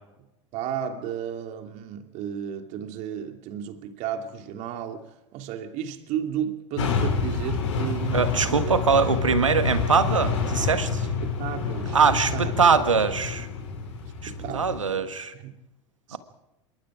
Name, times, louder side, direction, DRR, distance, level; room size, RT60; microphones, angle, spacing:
voice 1, 0.5-8.8 11.2-12.5 14.2-15.5 16.1-16.2, right 9 dB, 50° right, 2.7 m, -34 dB
sound 1, 6.8-14.8, left 5 dB, 75° left, 6.8 m, -28 dB
voice 2, 8.1-11.1 11.9-13.5 14.2-15.3 16.1-16.2, right 5 dB, 90° right, 1.6 m, -22 dB
26.5 x 23.0 x 5.0 m
hypercardioid pair, 85°, 16 cm